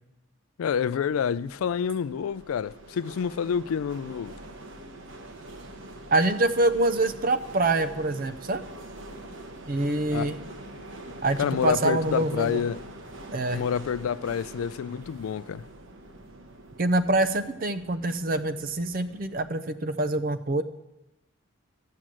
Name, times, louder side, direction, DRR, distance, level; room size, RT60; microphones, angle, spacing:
voice 1, 0.6-4.4 10.1-10.3 11.4-12.8 13.5-15.7, left 7 dB, 85° left, 0.3 m, -28 dB
sound 1, 0.7-19.5, right 1 dB, 65° right, 1.2 m, -44 dB
voice 2, 6.1-8.6 9.7-10.4 11.2-12.6 13.3-13.6 16.8-20.6, right 2 dB, 40° right, 0.5 m, -25 dB
13.0 x 7.5 x 7.5 m
head